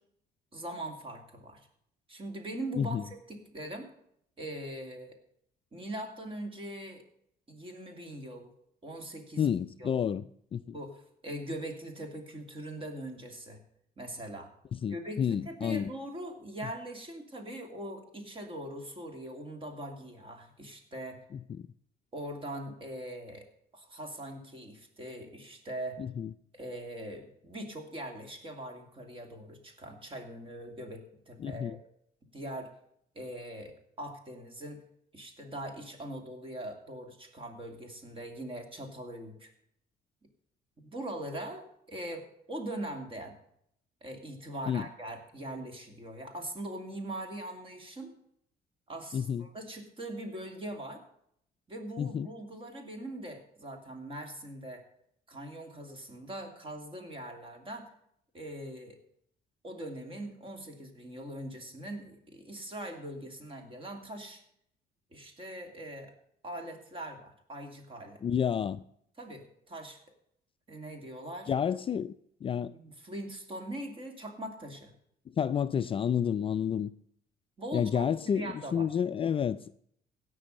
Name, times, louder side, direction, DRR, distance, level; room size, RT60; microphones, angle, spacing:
voice 1, 0.5-1.6 2.1-3.9 4.4-5.2 5.7-7.0 7.5-8.5 8.8-9.5 9.8-10.0 10.7-13.6 14.0-14.5 14.9-21.2 22.1-23.5 23.7-26.0 26.5-31.8 32.3-32.7 33.1-34.8 35.1-39.5 40.8-43.3 44.0-48.1 48.9-51.0 51.7-54.8 55.3-57.9 58.3-59.0 59.6-64.4 65.1-66.1 66.4-68.2 69.2-70.0 70.7-71.5 72.7-74.9 77.6-78.9, right 1 dB, 30° right, 2.8 m, -41 dB
voice 2, 9.4-10.2 10.5-10.6 14.7-15.9 21.3-21.7 26.0-26.3 31.4-31.8 44.7-44.9 49.1-49.5 52.0-52.3 68.2-68.8 71.5-72.1 72.4-72.7 75.4-76.9 77.7-79.7, left 8 dB, 35° left, 0.4 m, -30 dB
16.5 x 6.2 x 6.5 m
cardioid pair, 110°, 17 cm